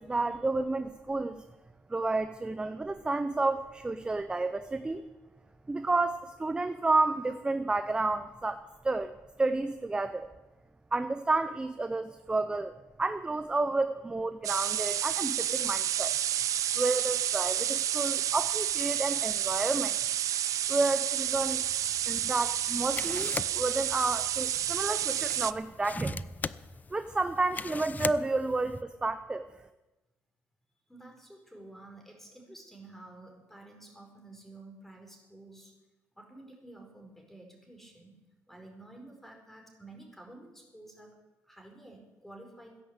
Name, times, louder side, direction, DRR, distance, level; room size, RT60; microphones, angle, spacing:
voice 1, 0.0-1.4 1.9-5.1 5.7-9.1 9.4-10.3 10.9-12.7 13.0-16.1 16.8-20.0 20.7-21.7 22.1-26.2 26.9-29.4, right 3 dB, 15° right, 10 dB, 0.7 m, -30 dB
sound 1, 14.4-25.5, right 11 dB, 60° right, 0.5 m, -30 dB
sound 2, 21.3-28.8, left 5 dB, 25° left, 0.5 m, -41 dB
voice 2, 30.9-35.7 36.2-38.1 38.5-41.1 41.5-42.8, right 2 dB, 5° left, 1 dB, 4.7 m, -51 dB
15.5 x 10.5 x 8.2 m, 1.1 s
cardioid pair, 120°, 6 cm